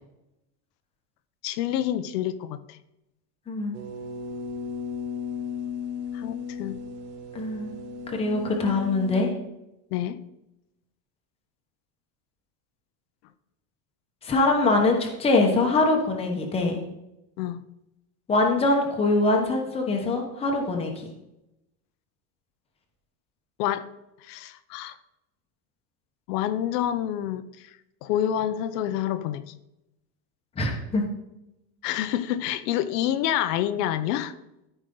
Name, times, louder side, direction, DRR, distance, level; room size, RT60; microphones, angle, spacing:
voice 1, 1.4-2.8 6.1-6.8 9.9-10.2 17.4-17.6 23.6-23.9 24.2-25.0 26.3-27.7 28.0-29.5 31.8-34.3, left 11 dB, 70° left, 12 dB, 0.9 m, -28 dB
sound 1, 3.7-9.2, left 5 dB, 80° right, 2.0 m, -35 dB
voice 2, 7.3-7.7 8.1-9.3 14.2-16.8 18.3-21.1 30.6-31.0, left 2 dB, 10° left, 1 dB, 1.0 m, -23 dB
13.5 x 5.1 x 3.9 m, 0.90 s
cardioid pair, 175°, 50 cm